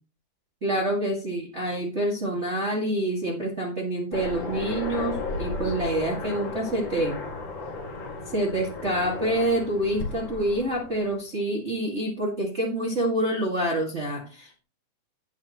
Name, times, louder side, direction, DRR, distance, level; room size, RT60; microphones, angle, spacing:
voice 1, 0.6-7.2 8.3-14.6, right 1 dB, 35° right, -2 dB, 1.1 m, -27 dB
Aircraft, 4.1-11.2, left 3 dB, 40° left, 2.0 m, -34 dB
16.5 x 6.1 x 3.0 m, 0.34 s
omnidirectional pair, 4.9 m